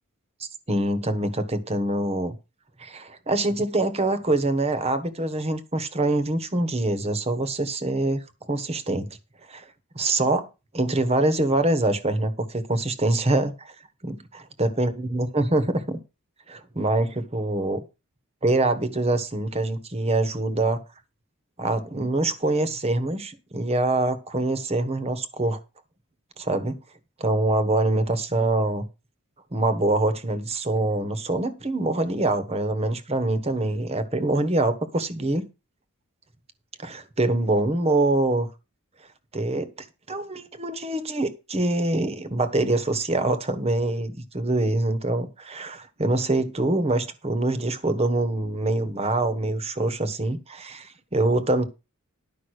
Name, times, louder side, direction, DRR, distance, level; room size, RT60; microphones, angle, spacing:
voice 1, 0.4-2.3 2.8-9.1 9.5-9.7 9.9-10.5 10.7-13.7 14.0-14.2 14.6-16.0 16.5-17.8 18.4-20.8 21.6-25.6 26.4-26.8 27.2-28.9 29.5-35.4 36.8-38.5 39.3-39.7 40.1-51.7, right 2 dB, 30° right, 1.2 m, -24 dB
11.5 x 5.5 x 6.4 m
head